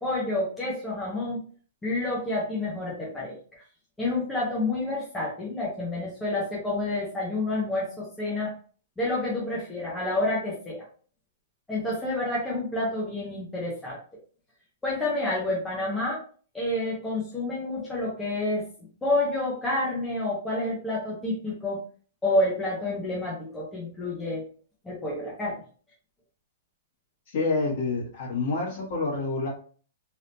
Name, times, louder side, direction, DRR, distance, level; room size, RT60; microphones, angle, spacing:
voice 1, 0.0-1.4 1.8-3.4 4.0-8.5 9.0-10.8 11.7-14.0 14.8-16.2 16.5-18.6 19.0-21.8 22.2-24.4 24.8-25.6, left 2 dB, 5° left, -6 dB, 0.8 m, -29 dB
voice 2, 27.3-29.5, left 3 dB, 50° left, -4 dB, 1.5 m, -28 dB
3.3 x 2.7 x 2.6 m, 0.42 s
hypercardioid pair, 170°, 0 cm